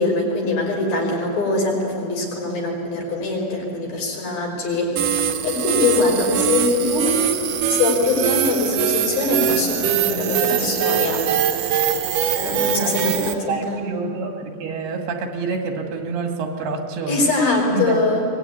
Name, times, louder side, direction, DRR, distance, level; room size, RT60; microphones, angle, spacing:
voice 1, 0.0-5.0 5.4-7.2 7.7-11.2 12.3-13.9 17.1-18.3, left 3 dB, 65° left, 0 dB, 6.7 m, -22 dB
sound 1, 5.0-13.3, right 9 dB, 70° right, 2.5 m, -22 dB
voice 2, 12.8-17.2 17.7-18.0, right 4 dB, 90° right, 3 dB, 4.2 m, -27 dB
23.0 x 20.0 x 9.7 m, 2.5 s
omnidirectional pair, 4.5 m